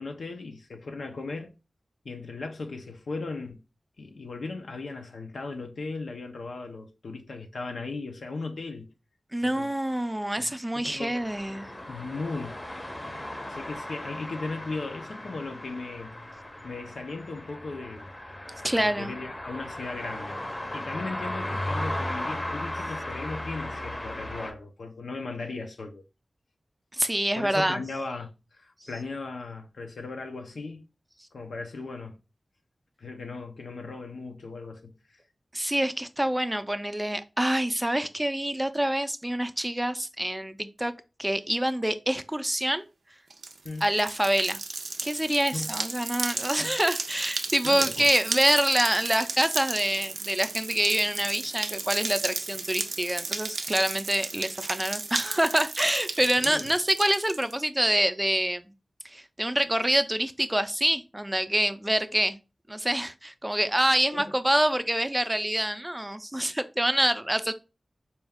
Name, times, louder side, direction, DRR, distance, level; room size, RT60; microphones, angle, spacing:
voice 1, 0.0-1.5 2.0-3.6 4.0-8.9 9.4-9.7 10.4-11.1 11.9-12.6 13.0-16.1 16.6-18.1 18.8-20.4 20.7-26.0 27.4-30.8 31.3-32.2 33.0-35.2 43.6-43.8 45.5-45.7 46.6-46.7 47.6-48.1 56.4-56.7 64.1-64.3, left 3 dB, 90° left, 0.6 m, -37 dB
voice 2, 9.3-11.7 18.6-19.1 26.9-27.8 28.8-28.9 35.5-40.9 41.2-42.8 43.8-44.6 45.0-58.7 59.0-62.4 62.7-67.5, right 1 dB, 15° right, 0.4 m, -26 dB
sound 1, 11.1-24.5, left 1 dB, 35° left, 0.7 m, -36 dB
sound 2, 43.3-57.5, right 4 dB, 85° right, 0.4 m, -34 dB
4.3 x 2.3 x 3.4 m
wide cardioid pair, 55°, 0 cm